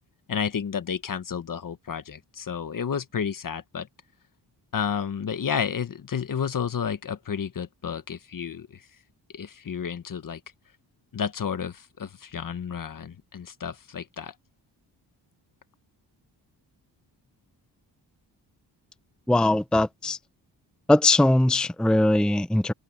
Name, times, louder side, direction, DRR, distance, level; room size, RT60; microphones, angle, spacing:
voice 1, 0.3-3.9 4.7-8.8 9.3-10.4 11.1-14.3, left 7 dB, 50° left, 1.5 m, -31 dB
voice 2, 19.3-20.2 20.9-22.7, left 2 dB, ahead, 0.7 m, -20 dB
cardioid pair, 90°, 42 cm